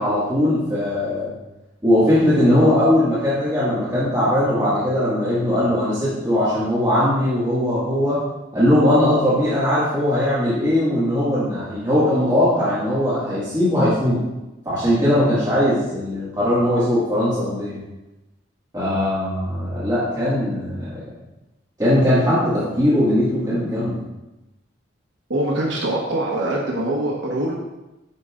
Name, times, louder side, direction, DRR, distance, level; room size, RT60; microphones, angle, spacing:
voice 1, 0.0-1.3 1.8-8.2 8.5-14.2 14.7-17.8 18.7-21.1 21.8-24.0, left 1 dB, 20° right, -12 dB, 1.8 m, -19 dB
voice 2, 25.3-27.5, right 1 dB, 75° right, -2 dB, 1.1 m, -23 dB
11.0 x 5.4 x 2.5 m, 0.99 s
head